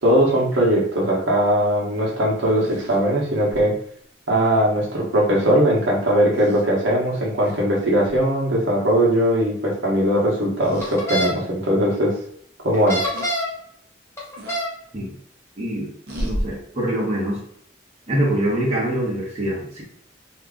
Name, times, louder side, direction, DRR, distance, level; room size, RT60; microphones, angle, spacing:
voice 1, 0.0-3.7 4.3-12.1 12.6-13.1, equal, 85° right, -4 dB, 1.0 m, -20 dB
sound 1, 2.6-3.7 5.3-5.5 6.3-6.6 7.4-7.7 8.0-8.2 10.6-11.0 11.6-11.7 13.1-13.3 14.4-14.6 16.1-16.4, equal, 55° right, 0.8 m, -32 dB
sound 2, 10.8-11.3 12.7-13.6 14.2-14.7, equal, 15° left, 0.8 m, -25 dB
voice 2, 15.6-15.9 16.2-17.4 18.1-19.8, right 1 dB, 35° right, -6 dB, 1.1 m, -24 dB
2.7 x 2.4 x 3.5 m, 0.63 s
head